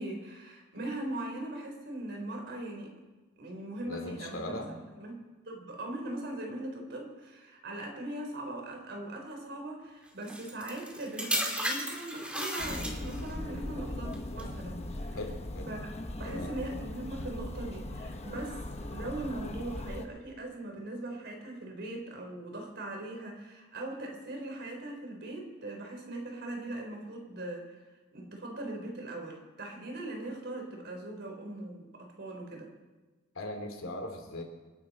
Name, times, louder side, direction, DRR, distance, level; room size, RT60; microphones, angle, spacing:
voice 1, 0.0-2.9 3.4-5.2 5.4-15.2 15.7-15.8 16.1-27.8 28.1-32.7, right 1 dB, 55° right, 1 dB, 4.1 m, -40 dB
voice 2, 3.9-4.8 15.1-15.7 16.2-16.5 33.3-34.4, left 1 dB, 70° left, 3 dB, 3.0 m, -39 dB
sound 1, 10.3-13.3 14.1-14.4, equal, 5° right, 2.4 m, -34 dB
sound 2, 12.6-20.1, left 1 dB, 30° left, 1.1 m, -39 dB
27.0 x 11.5 x 4.3 m, 1.2 s
head